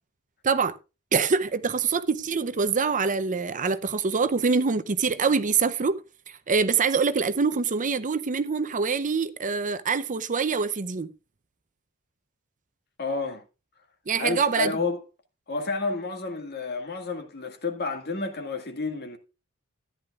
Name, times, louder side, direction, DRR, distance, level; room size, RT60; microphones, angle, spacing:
voice 1, 0.4-0.8 1.1-6.0 6.5-11.1 14.1-14.7, right 5 dB, 35° right, 0.6 m, -25 dB
voice 2, 13.0-13.4 14.2-15.0 15.5-19.2, left 3 dB, 45° left, 1.9 m, -30 dB
14.0 x 10.5 x 2.4 m
head